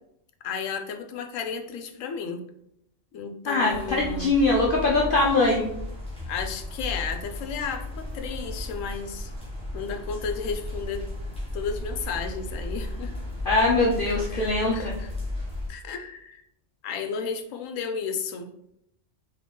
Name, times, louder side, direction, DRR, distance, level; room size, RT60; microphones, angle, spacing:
voice 1, 0.4-2.4 3.1-4.3 6.3-9.3 9.7-11.0 11.5-13.2 14.1-15.1 15.7-16.4 16.8-18.5, left 5 dB, 90° left, 6 dB, 1.0 m, -33 dB
voice 2, 3.5-5.6 13.5-14.9, left 2 dB, 55° left, -3 dB, 0.7 m, -22 dB
sound 1, 3.7-15.7, left 1 dB, 5° left, 1.0 m, -35 dB
3.6 x 3.1 x 3.7 m, 0.78 s
omnidirectional pair, 1.3 m